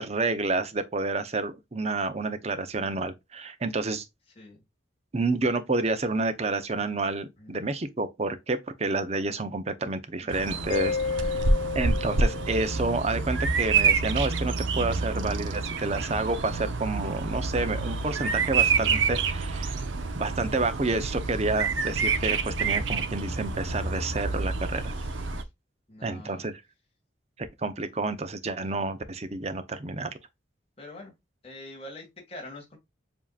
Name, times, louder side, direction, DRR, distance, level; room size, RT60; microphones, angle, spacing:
voice 1, 0.0-4.1 5.1-11.4 11.7-19.7 20.1-24.9 26.0-26.5 27.4-30.1, right 3 dB, 35° right, 0.6 m, -29 dB
voice 2, 7.4-7.7 10.1-11.7 24.9-25.5 25.9-26.6 30.8-31.1 31.4-32.8, left 1 dB, 30° left, 1.9 m, -46 dB
Bird vocalization bird call bird song, 10.3-25.4, right 4 dB, 90° right, 0.7 m, -28 dB
Mallet percussion, 10.7-13.2, left 5 dB, 80° left, 0.9 m, -32 dB
7.3 x 2.8 x 2.4 m
head